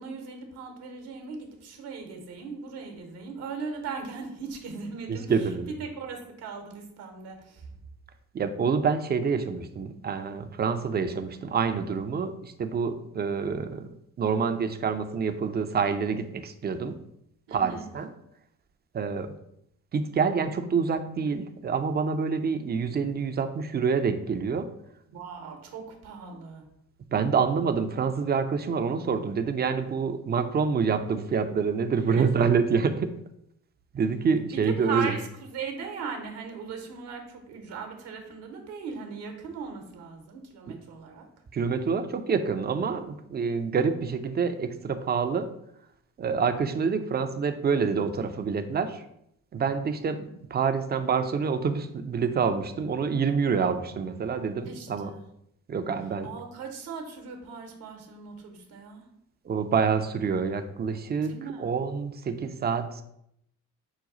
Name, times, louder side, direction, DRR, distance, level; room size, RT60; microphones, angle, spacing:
voice 1, 0.0-7.7 17.5-17.9 25.1-26.6 32.2-32.3 34.5-41.3 54.6-55.2 56.2-59.0 61.2-61.7, right 5 dB, 70° right, 4 dB, 0.9 m, -38 dB
voice 2, 5.1-5.7 8.3-13.9 14.2-17.0 17.5-18.1 18.9-19.3 19.9-24.7 27.1-33.1 33.9-35.1 40.7-40.8 41.5-45.5 46.2-49.0 49.5-55.1 55.7-56.3 59.4-61.3 61.6-63.0, right 5 dB, 25° right, 8 dB, 0.4 m, -27 dB
5.1 x 2.3 x 3.9 m, 0.76 s
hypercardioid pair, 45°, 42 cm